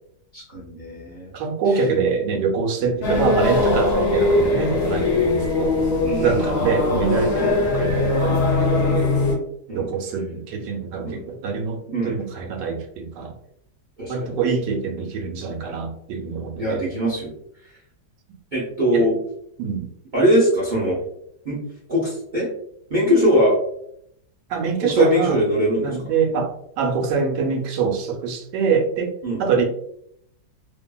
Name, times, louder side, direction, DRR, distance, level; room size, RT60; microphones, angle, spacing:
voice 1, 0.3-1.3 1.6-1.9 2.8-3.0 6.0-6.7 7.4-7.6 8.2-8.5 8.8-9.0 9.7-9.9 11.0-11.2 11.9-12.2 14.0-14.3 16.6-17.3 18.5-19.2 20.1-21.0 21.4-21.6 21.9-22.5 22.9-23.6 24.8-26.1 29.2-29.4, equal, 45° right, -7 dB, 0.6 m, -22 dB
voice 2, 1.3-5.9 6.2-9.1 9.7-13.3 14.1-16.8 18.9-19.0 19.6-19.9 24.5-25.4 25.8-26.5 26.8-29.1 29.4-29.6, right 5 dB, 85° right, 3 dB, 1.2 m, -24 dB
sound 1, 3.0-9.4, left 3 dB, 60° left, 0.9 m, -20 dB
2.8 x 2.5 x 2.2 m, 0.72 s
omnidirectional pair, 1.8 m